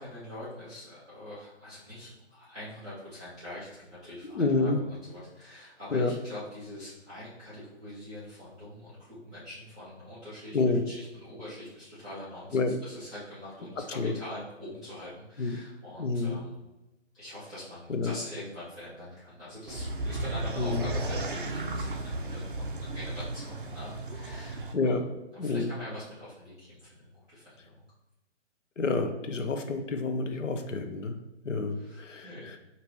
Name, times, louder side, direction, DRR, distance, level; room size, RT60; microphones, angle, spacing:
voice 1, 0.0-12.6 12.8-16.5 17.1-25.0 25.3-27.7 31.7-32.6, left 1 dB, 5° left, -16 dB, 0.6 m, -44 dB
voice 2, 4.2-4.8 5.9-6.1 10.5-10.8 12.5-12.7 14.0-14.1 15.4-15.6 16.0-16.4 17.9-18.1 20.6-20.9 24.7-25.1 25.4-25.7 28.8-31.2 31.4-32.6, left 3 dB, 85° left, 6 dB, 0.9 m, -28 dB
sound 1, 19.7-24.7, right 2 dB, 45° right, 0.6 m, -34 dB
5.2 x 2.9 x 3.0 m, 0.99 s
hypercardioid pair, 165°, 36 cm